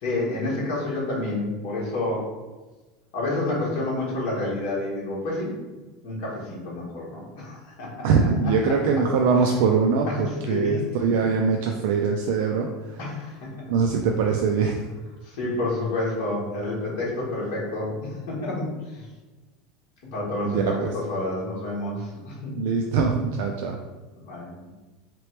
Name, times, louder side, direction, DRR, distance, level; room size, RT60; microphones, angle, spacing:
voice 1, 0.0-2.3 3.1-5.6 6.0-8.1 10.3-10.8 13.0-13.3 15.2-19.0 20.1-22.5 24.2-24.5, left 2 dB, 50° left, -6 dB, 1.4 m, -29 dB
voice 2, 8.0-13.0 13.7-14.8 20.4-20.9 22.5-23.8, right 5 dB, 60° right, 2 dB, 0.3 m, -22 dB
4.0 x 3.0 x 3.3 m, 1.2 s
supercardioid pair, 180°, 0 cm